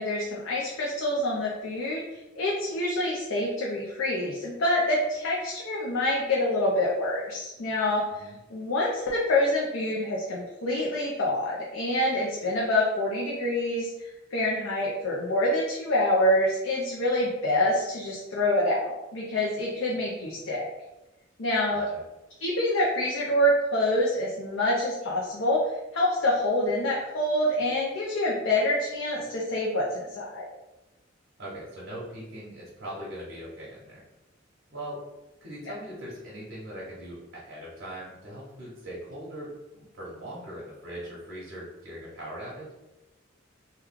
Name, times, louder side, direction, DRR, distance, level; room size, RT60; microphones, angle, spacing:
voice 1, 0.0-2.0 2.4-8.2 8.5-20.7 21.4-21.9 22.4-30.5, left 1 dB, 90° left, -4 dB, 0.6 m, -26 dB
voice 2, 21.7-22.0 31.4-34.0 34.7-35.0 35.4-42.7, right 1 dB, 65° right, -7 dB, 0.9 m, -40 dB
3.0 x 2.3 x 3.5 m, 1.0 s
head